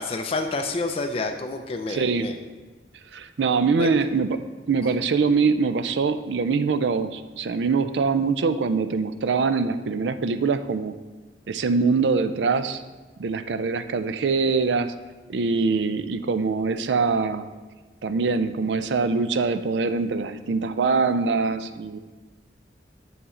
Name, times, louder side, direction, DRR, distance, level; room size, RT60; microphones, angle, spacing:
voice 1, 0.0-2.4 3.8-3.9, left 3 dB, 30° left, 4 dB, 0.4 m, -28 dB
voice 2, 1.9-2.3 3.1-4.4 4.7-10.9 11.5-12.8 13.2-14.9 15.3-17.5 18.0-22.0, right 4 dB, 75° right, 11 dB, 0.4 m, -23 dB
7.2 x 6.9 x 3.7 m, 1.3 s
head